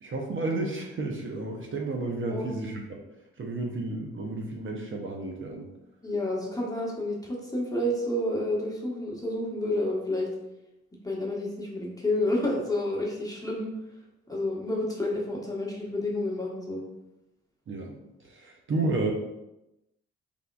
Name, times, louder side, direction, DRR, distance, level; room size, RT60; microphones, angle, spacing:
voice 1, 0.0-2.8 3.4-5.7 17.7-19.1, right 2 dB, 45° right, 1 dB, 0.6 m, -32 dB
voice 2, 6.0-10.3 11.0-13.7 14.3-16.8 18.7-18.9, left 1 dB, 10° left, -3 dB, 1.0 m, -30 dB
3.5 x 3.5 x 2.2 m, 0.93 s
cardioid pair, 70°, 29 cm